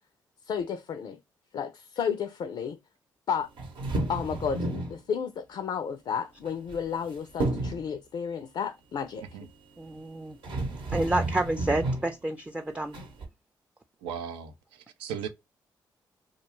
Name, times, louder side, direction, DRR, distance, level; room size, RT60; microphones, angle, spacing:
voice 1, 0.5-1.2 1.5-2.8 3.3-3.5 4.1-9.2, left 7 dB, 60° left, 0.4 m, -32 dB
sound 1, 3.6-5.0 6.5-7.1 7.4-7.9 9.9-10.0 10.4-12.1 12.9-13.3, right 2 dB, 70° right, 0.8 m, -31 dB
voice 2, 9.8-10.4 10.9-13.0, right 1 dB, 15° right, 0.4 m, -29 dB
voice 3, 14.0-15.3, right 8 dB, 85° right, 0.4 m, -37 dB
2.3 x 2.2 x 2.9 m
hypercardioid pair, 45°, 9 cm